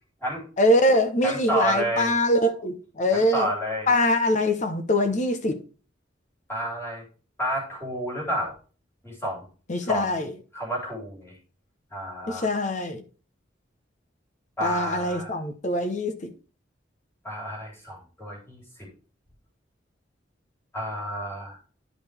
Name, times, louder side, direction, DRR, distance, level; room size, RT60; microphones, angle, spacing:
voice 1, 0.6-3.5 3.9-5.6 9.7-10.3 12.3-13.0 14.6-16.3, left 1 dB, 40° left, 0.9 m, -23 dB
voice 2, 1.2-2.1 3.1-3.9 6.5-7.0 7.4-8.5 9.0-9.4 9.8-10.1 10.5-11.3 11.9-12.5 14.6-15.3 17.2-18.6 20.7-21.6, right 1 dB, 15° left, 3.4 m, -30 dB
11.0 x 5.1 x 3.4 m
head